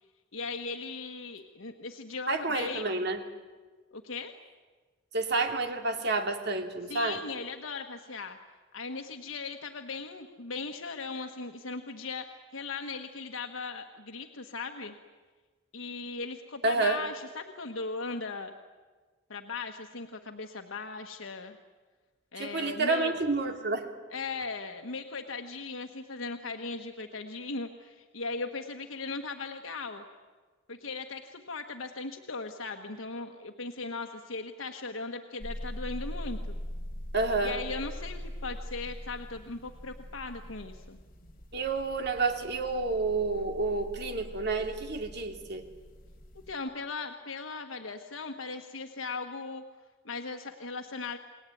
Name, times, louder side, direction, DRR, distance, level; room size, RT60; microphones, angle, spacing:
voice 1, 0.3-2.9 3.9-4.3 6.9-8.4 8.7-14.9 15.7-18.5 19.3-21.6 22.3-23.2 24.1-30.0 30.7-36.6 37.4-41.0 46.5-49.6 50.0-51.2, left 4 dB, 90° left, 5 dB, 1.4 m, -38 dB
voice 2, 2.3-3.2 5.1-7.2 16.6-17.0 22.4-23.9 37.1-37.6 41.5-45.7, right 3 dB, 55° right, 5 dB, 2.7 m, -29 dB
sound 1, 35.4-46.5, equal, 45° left, 4.4 m, -42 dB
29.0 x 20.5 x 9.3 m, 1.4 s
head